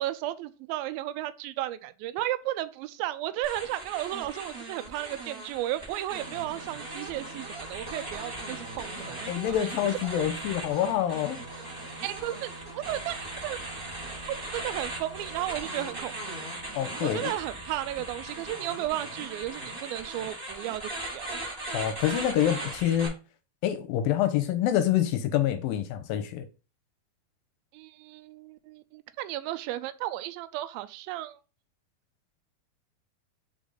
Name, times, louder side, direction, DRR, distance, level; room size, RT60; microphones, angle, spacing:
voice 1, 0.0-9.6 12.0-13.2 13.4-13.6 14.3-16.4 17.0-21.4 27.7-31.4, right 14 dB, 80° right, 2.3 m, -34 dB
sound 1, 3.4-23.1, right 2 dB, 15° right, 2.7 m, -39 dB
sound 2, 6.1-21.5, right 2 dB, 55° right, 2.8 m, -47 dB
voice 2, 9.3-11.4 16.7-17.3 21.7-23.1 23.6-26.5, left 11 dB, 80° left, 2.2 m, -26 dB
5.2 x 5.1 x 3.9 m
omnidirectional pair, 4.4 m